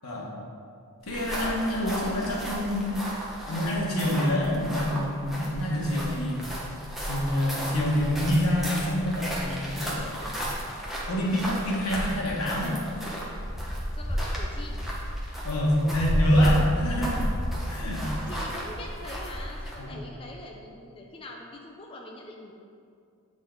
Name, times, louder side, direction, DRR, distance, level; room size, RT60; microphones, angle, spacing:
voice 1, 0.0-0.3 1.0-3.0 3.4-6.4 7.1-10.4 11.1-12.7 15.4-17.2 17.7-18.1 19.8-20.0, equal, 85° left, -4 dB, 1.5 m, -26 dB
sound 1, 1.0-19.9, equal, ahead, 0.8 m, -33 dB
voice 2, 14.0-14.8 18.3-22.5, left 1 dB, 25° left, 0 dB, 0.4 m, -43 dB
7.9 x 4.0 x 3.9 m, 2.3 s
head